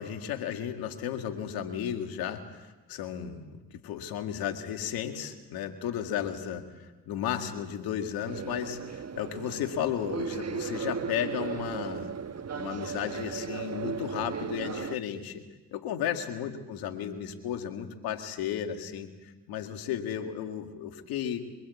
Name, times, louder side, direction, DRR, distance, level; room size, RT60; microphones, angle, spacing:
voice 1, 0.0-12.1 12.6-15.4 15.7-21.4, left 9 dB, 90° left, 5 dB, 2.1 m, -34 dB
sound 1, 8.3-15.0, right 6 dB, 45° right, 1.3 m, -36 dB
23.5 x 23.0 x 8.4 m, 1.2 s
supercardioid pair, 50°, 36 cm